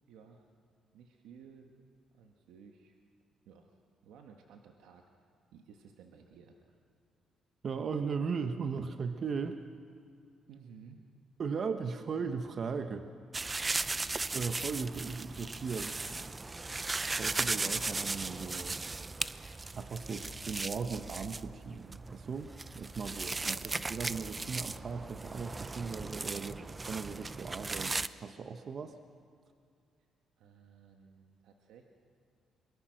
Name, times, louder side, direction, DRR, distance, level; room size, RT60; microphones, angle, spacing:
voice 1, 0.1-0.5 0.9-1.8 2.1-3.0 3.4-3.7 4.0-6.8 10.5-11.0 23.4-23.7 30.4-31.8, right 6 dB, 90° right, 3 dB, 1.5 m, -56 dB
voice 2, 7.6-9.6 11.4-13.1 14.3-16.0 17.2-18.8 19.7-29.0, right 5 dB, 50° right, 8 dB, 1.1 m, -37 dB
sound 1, 13.3-28.1, right 3 dB, 25° right, 0.6 m, -37 dB
23.5 x 22.5 x 6.5 m, 2.3 s
cardioid pair, 90°, 0 cm